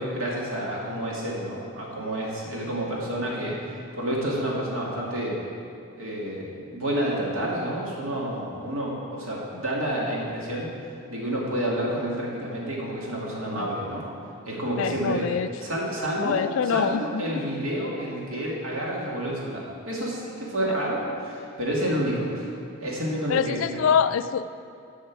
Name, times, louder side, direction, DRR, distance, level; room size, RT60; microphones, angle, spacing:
voice 1, 0.0-5.4 6.0-10.7 11.1-14.0 14.5-15.3 15.6-22.5 22.8-23.8, right 1 dB, 80° right, -4 dB, 2.1 m, -29 dB
voice 2, 14.8-15.5 16.2-17.3 20.7-20.8 23.3-24.5, left 7 dB, 70° left, 13 dB, 0.3 m, -25 dB
10.5 x 6.3 x 4.7 m, 2.5 s
head